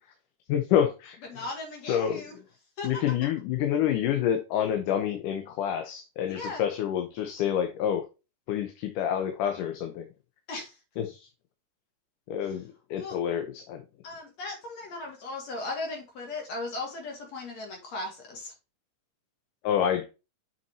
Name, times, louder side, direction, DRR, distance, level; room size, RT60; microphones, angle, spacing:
voice 1, 0.5-1.2 1.9-2.2 2.8-8.0 8.5-10.0 11.0-11.2 12.3-12.6 12.9-13.8 19.6-20.0, left 9 dB, 85° left, 2.5 m, -27 dB
voice 2, 1.3-2.4 2.8-3.0 6.3-6.6 10.5-10.8 12.4-12.6 13.0-13.2 14.0-18.5, left 2 dB, 60° left, 3.2 m, -37 dB
7.7 x 5.9 x 2.8 m
omnidirectional pair, 3.6 m